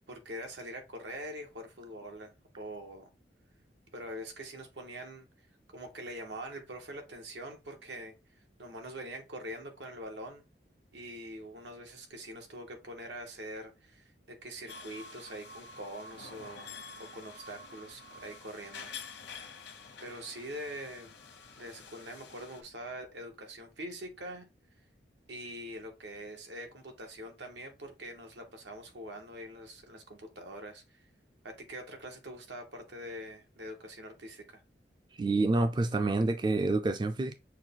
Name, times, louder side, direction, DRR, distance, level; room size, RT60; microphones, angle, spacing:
voice 1, 0.1-3.1 3.9-5.3 5.7-8.1 8.6-10.4 10.9-18.9 20.0-21.1 21.6-24.5 25.3-31.0 31.4-34.6, right 1 dB, 90° right, 1.3 m, -44 dB
sound 1, 14.7-22.6, left 4 dB, 80° left, 0.9 m, -48 dB
voice 2, 35.2-37.3, right 2 dB, 25° right, 0.3 m, -28 dB
6.3 x 2.3 x 3.6 m
head